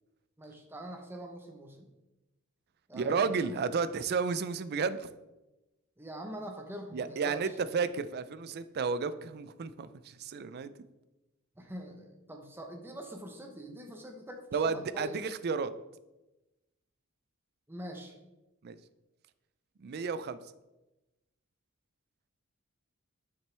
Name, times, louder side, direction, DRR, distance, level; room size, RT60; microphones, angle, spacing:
voice 1, 0.4-1.9 2.9-3.6 6.0-7.6 11.6-15.2 17.7-18.2, equal, 10° right, 3 dB, 0.9 m, -44 dB
voice 2, 2.9-5.1 6.9-10.7 14.5-15.7 18.6-18.8 19.8-20.4, right 5 dB, 50° right, 14 dB, 0.4 m, -32 dB
7.3 x 5.9 x 3.3 m, 1.0 s
head